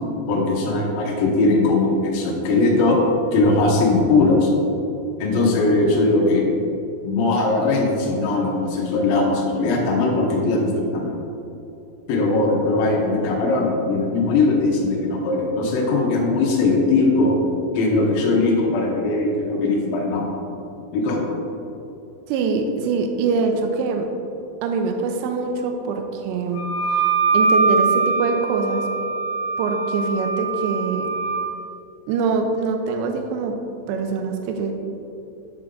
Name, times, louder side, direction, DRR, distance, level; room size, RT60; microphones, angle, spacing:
voice 1, 0.3-3.0 3.3-4.5 5.2-6.5 7.0-11.1 12.1-17.4 17.7-20.3 20.9-21.2, left 3 dB, 75° left, -1 dB, 2.1 m, -20 dB
voice 2, 22.3-24.1 24.6-26.7 27.3-28.9 29.6-31.1 32.1-33.6 33.9-34.7, right 4 dB, 85° right, 4 dB, 2.6 m, -23 dB
Wind instrument woodwind instrument, 26.5-31.5, right 4 dB, 50° left, 2.5 m, -22 dB
9.5 x 6.2 x 3.8 m, 2.8 s
omnidirectional pair, 5.7 m